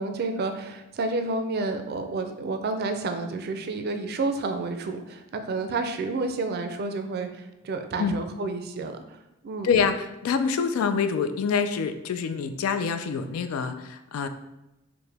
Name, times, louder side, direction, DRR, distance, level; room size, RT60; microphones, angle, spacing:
voice 1, 0.0-9.2 9.4-9.7, right 3 dB, 50° right, 7 dB, 0.4 m, -30 dB
voice 2, 9.6-14.3, left 6 dB, 85° left, 10 dB, 0.3 m, -26 dB
4.6 x 2.1 x 3.3 m, 0.93 s
head